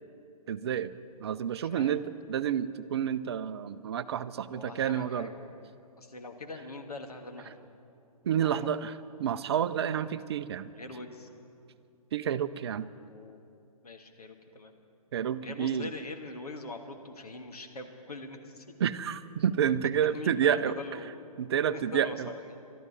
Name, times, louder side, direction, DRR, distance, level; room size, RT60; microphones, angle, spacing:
voice 1, 0.5-0.9 1.2-2.0 2.3-5.3 8.2-8.9 9.2-10.7 12.1-12.9 15.1-15.9 18.8-20.7 21.4-22.3, right 9 dB, 40° right, 13 dB, 0.6 m, -29 dB
voice 2, 1.6-1.9 4.5-5.5 6.0-7.5 8.4-8.5 10.7-11.3 13.1-13.4 13.8-14.7 15.4-18.6 20.1-21.2 21.6-22.6, left 2 dB, 75° left, 4 dB, 1.7 m, -42 dB
24.0 x 12.5 x 4.2 m, 2.5 s
figure-of-eight pair, 130°, 20 cm